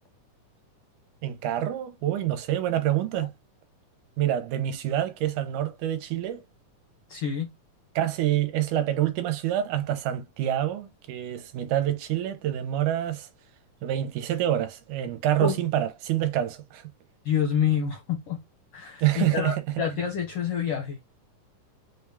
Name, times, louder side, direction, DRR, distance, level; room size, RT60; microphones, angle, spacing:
voice 1, 1.2-3.3 4.2-6.4 8.0-13.3 13.8-16.9 19.0-19.6, right 12 dB, 80° right, 2.1 m, -27 dB
voice 2, 7.1-7.5 15.4-15.5 17.2-18.4 18.7-21.0, left 8 dB, 75° left, 1.4 m, -27 dB
5.3 x 2.3 x 3.3 m
omnidirectional pair, 3.7 m